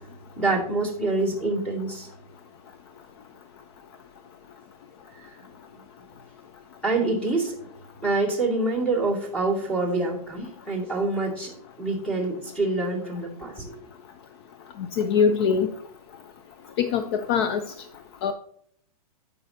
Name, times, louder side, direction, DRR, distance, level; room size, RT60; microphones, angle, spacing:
voice 1, 0.4-2.1 5.2-5.4 6.8-7.6 8.0-13.8, right 2 dB, 5° left, -2 dB, 2.2 m, -26 dB
voice 2, 15.0-15.7 16.8-17.6 18.2-18.3, left 6 dB, 45° left, 9 dB, 0.5 m, -22 dB
15.5 x 5.4 x 2.8 m, 0.67 s
supercardioid pair, 160°, 19 cm